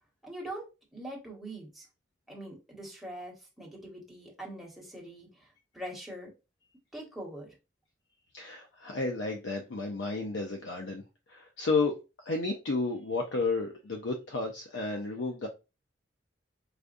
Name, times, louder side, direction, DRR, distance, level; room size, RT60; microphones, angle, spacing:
voice 1, 0.2-0.7 0.9-1.9 2.3-5.5 5.7-6.3 6.9-7.5, right 1 dB, ahead, 1.2 m, -43 dB
voice 2, 8.3-11.0 11.3-15.5, left 3 dB, 75° left, 0.6 m, -32 dB
5.0 x 2.4 x 2.5 m
head